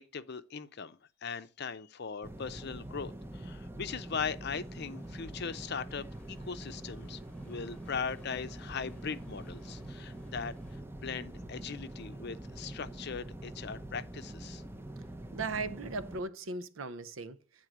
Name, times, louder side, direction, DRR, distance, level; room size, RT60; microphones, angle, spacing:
voice 1, 0.0-10.5 11.0-14.6, left 6 dB, 55° left, 0.6 m, -39 dB
sound 1, 2.2-16.2, right 1 dB, 10° right, 0.6 m, -45 dB
sound 2, 4.6-10.8, left 1 dB, 10° left, 1.3 m, -60 dB
voice 2, 15.3-17.7, right 3 dB, 75° right, 0.7 m, -38 dB
9.2 x 3.8 x 6.0 m
head